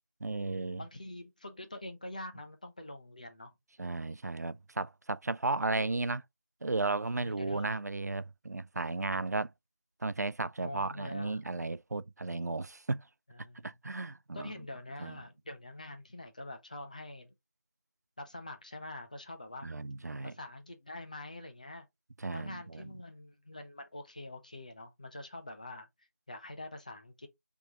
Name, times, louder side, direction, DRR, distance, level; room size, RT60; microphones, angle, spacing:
voice 1, 0.2-0.8 3.8-6.2 6.6-9.5 10.0-13.1 13.6-14.5 15.0-15.2 19.6-20.3 22.2-22.9, right 3 dB, 70° right, 0.4 m, -34 dB
voice 2, 0.8-3.5 7.1-7.7 10.6-11.4 13.3-13.7 14.3-17.3 18.2-19.7 20.2-21.9 22.3-25.9 26.3-27.3, left 1 dB, 25° left, 0.6 m, -45 dB
4.7 x 3.5 x 2.7 m
figure-of-eight pair, 170°, 9 cm